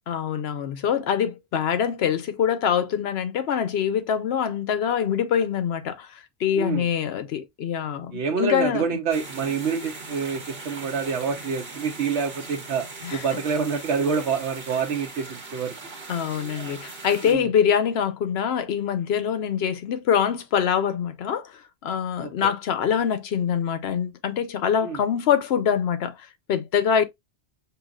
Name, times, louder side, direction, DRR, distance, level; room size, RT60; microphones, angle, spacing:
voice 1, 0.1-8.9 13.0-13.2 16.1-27.1, left 8 dB, 70° left, 0.8 m, -24 dB
voice 2, 6.6-6.9 8.1-12.8 13.1-15.7 17.2-17.5 22.2-22.5 24.8-25.0, right 5 dB, 80° right, 1.0 m, -27 dB
sound 1, 9.1-17.3, right 3 dB, 60° right, 1.5 m, -40 dB
5.8 x 2.8 x 2.4 m
omnidirectional pair, 1.1 m